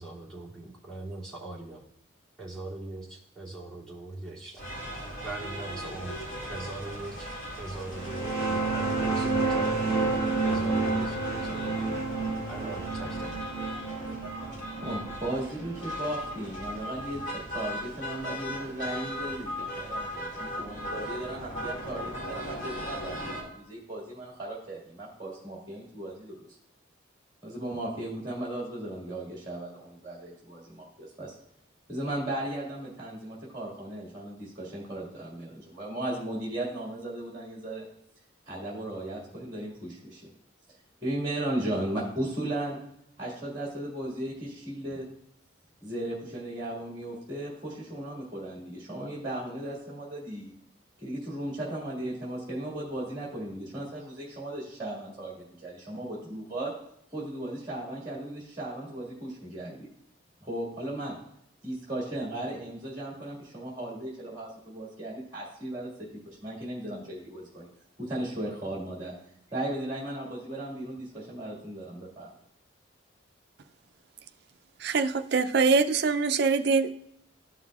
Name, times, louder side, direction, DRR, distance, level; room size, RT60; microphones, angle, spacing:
voice 1, 0.0-1.8 2.4-4.6 5.2-7.3 7.6-9.8 10.4-11.9 12.5-13.3, right 2 dB, ahead, -11 dB, 2.6 m, -40 dB
sound 1, 4.6-23.4, equal, 35° left, 2.4 m, -38 dB
sound 2, 7.9-17.2, right 3 dB, 20° left, 2.5 m, -30 dB
voice 2, 14.7-26.5 27.4-31.4 31.9-37.9 38.5-40.3 41.0-42.8 43.2-45.0 45.8-50.5 51.0-56.7 57.1-59.9 60.4-61.2 61.6-67.7 68.0-69.1 69.5-72.3, right 1 dB, 20° right, -5 dB, 1.9 m, -36 dB
voice 3, 74.8-76.9, right 4 dB, 55° right, 10 dB, 0.4 m, -24 dB
13.5 x 5.6 x 2.4 m, 0.74 s
head